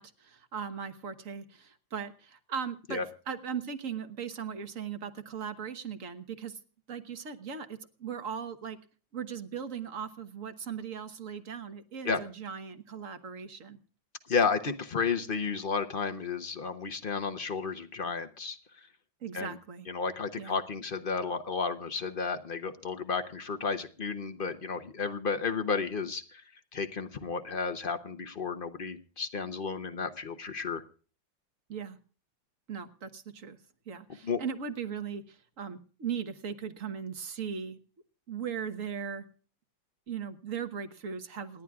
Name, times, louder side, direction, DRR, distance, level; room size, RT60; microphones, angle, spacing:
voice 1, 0.0-6.6 6.9-8.8 9.1-13.8 19.2-19.9 20.4-20.6 31.7-32.0 32.7-33.6 33.9-37.8 38.3-39.3 40.1-41.6, right 7 dB, 50° right, 9 dB, 1.4 m, -38 dB
voice 2, 14.3-18.9 19.3-19.6 19.9-26.4 26.7-30.8 34.2-34.4, left 5 dB, 50° left, 8 dB, 0.6 m, -32 dB
27.5 x 11.0 x 2.4 m, 0.39 s
omnidirectional pair, 2.0 m